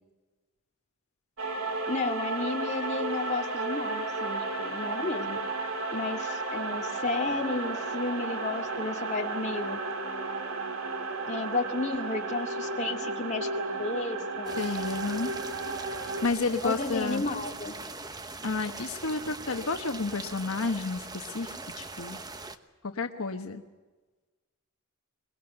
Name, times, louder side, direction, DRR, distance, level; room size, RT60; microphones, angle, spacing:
sound 1, 1.4-16.3, right 3 dB, 70° right, 2.4 m, -33 dB
voice 1, 1.9-5.4 5.9-9.8 11.3-14.6 16.6-17.7, left 3 dB, 35° left, 2 dB, 2.2 m, -32 dB
Piano, 7.3-14.4, right 2 dB, 55° right, 4.9 m, -56 dB
sound 2, 14.5-22.6, right 3 dB, 20° right, 1.1 m, -41 dB
voice 2, 14.6-15.3 16.2-17.2 18.4-22.2 22.8-23.6, left 3 dB, 75° left, 6 dB, 1.2 m, -31 dB
23.5 x 21.5 x 8.0 m, 1.2 s
head